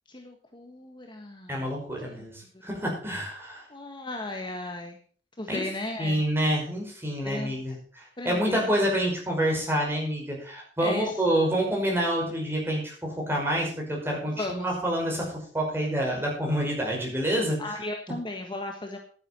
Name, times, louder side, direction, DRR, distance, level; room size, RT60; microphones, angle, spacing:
voice 1, 0.1-1.7 3.7-5.0 5.4-6.2 7.2-7.6 8.2-8.7 10.8-11.1 14.4-14.7 17.6-19.0, left 2 dB, 25° left, 3 dB, 1.5 m, -35 dB
voice 2, 1.5-3.7 5.5-5.6 6.0-17.8, right 1 dB, 15° right, -2 dB, 5.5 m, -28 dB
11.0 x 10.0 x 5.4 m, 0.44 s
head